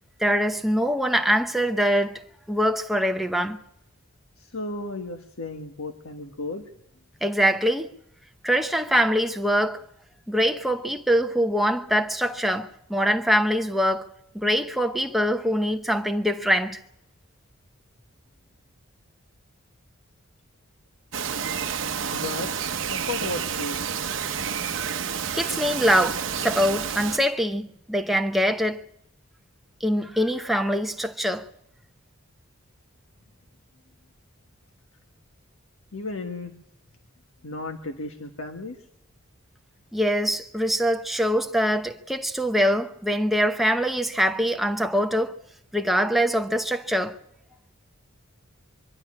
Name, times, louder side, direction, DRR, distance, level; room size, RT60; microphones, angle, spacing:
voice 1, 0.2-2.2 2.5-3.6 7.2-7.9 8.4-9.8 10.3-14.1 14.3-16.8 25.3-28.8 29.8-31.4 39.9-45.3 45.7-47.2, equal, ahead, 0.8 m, -23 dB
voice 2, 4.4-6.7 22.1-24.0 35.9-36.5 37.4-38.8, left 2 dB, 85° left, 1.5 m, -34 dB
Bird vocalization bird call bird song, 21.1-27.2, right 7 dB, 65° right, 0.8 m, -29 dB
24.0 x 12.0 x 9.8 m
head